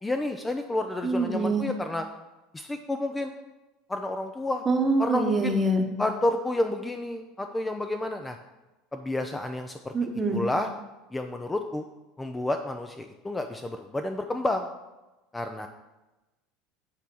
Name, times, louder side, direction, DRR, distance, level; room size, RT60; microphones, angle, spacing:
voice 1, 0.0-2.1 2.5-3.3 3.9-4.6 5.0-5.6 6.0-8.4 8.9-9.9 10.3-10.7 11.1-11.8 12.2-14.7 15.3-15.7, left 1 dB, 10° left, 6 dB, 0.4 m, -30 dB
voice 2, 1.0-1.6 4.7-5.8 9.9-10.4, right 2 dB, 20° right, 4 dB, 1.0 m, -24 dB
8.4 x 3.4 x 6.1 m, 1.1 s
supercardioid pair, 115°, 0 cm